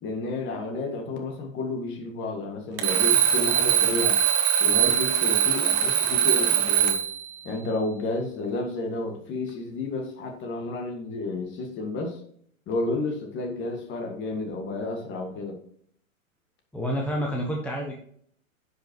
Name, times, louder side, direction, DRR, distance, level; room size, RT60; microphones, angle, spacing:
voice 1, 0.0-4.2 4.6-7.0 7.4-12.2 12.7-15.6, left 3 dB, 30° left, 4 dB, 1.7 m, -31 dB
Alarm, 2.8-7.2, right 9 dB, 40° right, 1.4 m, -22 dB
voice 2, 16.7-18.0, equal, 5° left, -1 dB, 0.8 m, -28 dB
9.9 x 5.6 x 3.0 m, 0.64 s
hypercardioid pair, 125°, 42 cm